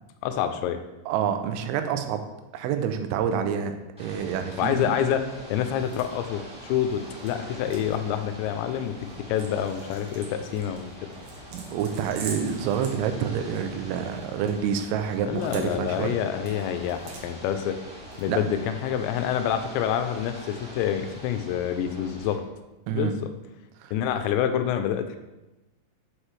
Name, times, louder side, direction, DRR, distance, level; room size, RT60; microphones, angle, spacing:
voice 1, 0.2-0.8 4.6-5.2 5.5-8.9 9.3-11.1 15.3-17.8 18.2-22.4 22.9-23.3 23.9-25.2, left 9 dB, 85° left, 8 dB, 2.8 m, -27 dB
voice 2, 1.1-2.2 2.5-4.9 11.5-16.1 18.3-18.5 22.9-23.1 23.8-23.9, right 8 dB, 90° right, 7 dB, 3.0 m, -28 dB
Ocean / Boat Water vehicle, 4.0-22.3, equal, 5° right, 0.8 m, -44 dB
sound 1, 5.3-18.7, right 4 dB, 75° right, 3.1 m, -47 dB
7.4 x 6.5 x 3.1 m, 1.0 s
omnidirectional pair, 5.2 m